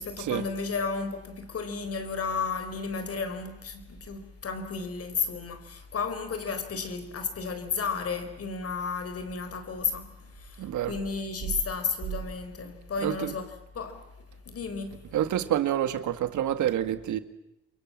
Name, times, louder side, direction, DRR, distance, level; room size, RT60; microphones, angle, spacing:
voice 1, 0.0-14.0 14.5-15.0, left 5 dB, 50° left, 4.5 m, -33 dB
voice 2, 10.6-10.9 13.0-13.1 15.1-17.2, right 11 dB, 75° right, 1.9 m, -27 dB
28.5 x 23.5 x 7.5 m
cardioid pair, 90°, 30 cm